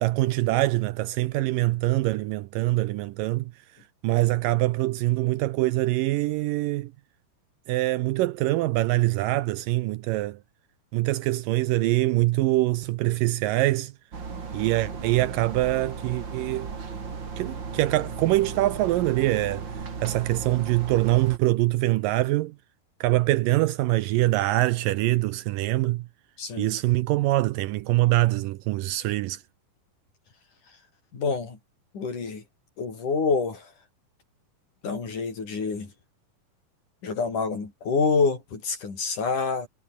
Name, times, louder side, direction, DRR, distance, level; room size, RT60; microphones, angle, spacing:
voice 1, 0.0-3.5 4.0-6.9 7.7-10.4 10.9-13.9 14.5-16.7 17.4-19.7 20.0-22.5 23.0-26.1 26.6-29.4, right 17 dB, 80° right, 2.1 m, -24 dB
sound 1, 14.1-21.4, right 5 dB, 35° right, 3.0 m, -36 dB
voice 2, 26.4-26.7 31.1-31.6 31.9-32.4 32.8-33.7 34.8-35.9 37.0-39.7, left 4 dB, 55° left, 6.7 m, -27 dB
omnidirectional pair, 4.3 m